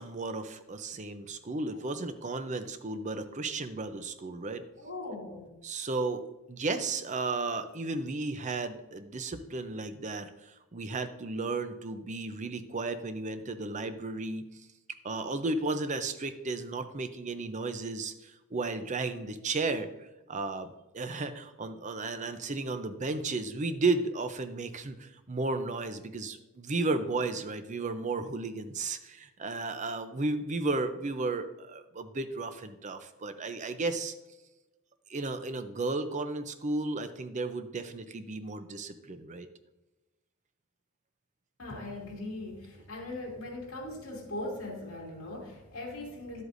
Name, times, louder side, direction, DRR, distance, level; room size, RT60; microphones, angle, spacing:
voice 1, 0.0-4.6 5.6-14.5 15.0-19.9 20.3-34.1 35.1-39.5, right 3 dB, 35° right, 9 dB, 0.5 m, -34 dB
voice 2, 4.8-5.5 41.6-46.4, left 2 dB, 65° left, -2 dB, 2.5 m, -40 dB
11.0 x 8.0 x 2.6 m, 1.0 s
head